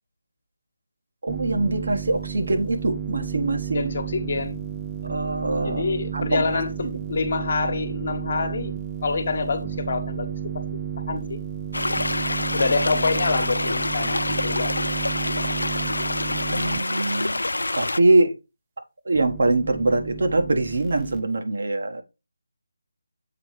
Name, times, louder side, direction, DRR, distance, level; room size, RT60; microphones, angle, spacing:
voice 1, 1.2-3.9 5.0-5.8 6.1-6.4 16.3-17.4 17.8-18.3 19.0-22.0, right 2 dB, 65° right, 1.4 m, -23 dB
sound 1, 1.3-16.8 19.1-21.2, right 9 dB, 15° right, 0.4 m, -32 dB
voice 2, 3.7-4.6 5.6-8.7 9.0-10.3 11.1-11.4 12.5-14.7, left 4 dB, 45° left, 1.2 m, -26 dB
sound 2, 11.7-18.0, left 2 dB, 85° left, 0.3 m, -26 dB
7.5 x 3.2 x 4.8 m
figure-of-eight pair, 160°, 0 cm